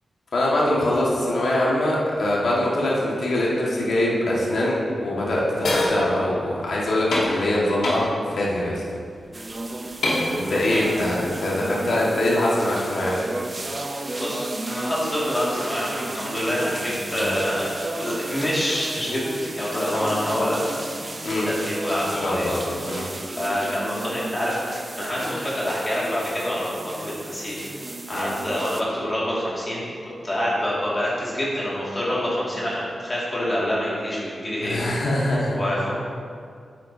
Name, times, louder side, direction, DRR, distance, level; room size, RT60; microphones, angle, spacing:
voice 1, 0.3-8.8 10.3-13.2 17.1-17.3 21.2-21.5 22.2-23.1 28.1-28.3 34.6-35.6, left 1 dB, 70° left, -5 dB, 1.8 m, -23 dB
sound 1, 5.6-6.0 7.1-7.4 7.8-8.0 9.2-9.3 10.0-10.9, left 1 dB, 85° left, 2.3 m, -24 dB
sound 2, 9.3-28.8, right 2 dB, 30° right, 0.7 m, -33 dB
voice 2, 10.4-10.8 14.1-20.8 21.4-22.5 23.4-27.6 28.1-29.9 30.2-34.8 35.5-35.9, equal, 25° left, -7 dB, 2.3 m, -26 dB
9.9 x 9.1 x 2.8 m, 2.2 s
wide cardioid pair, 105°, 0 cm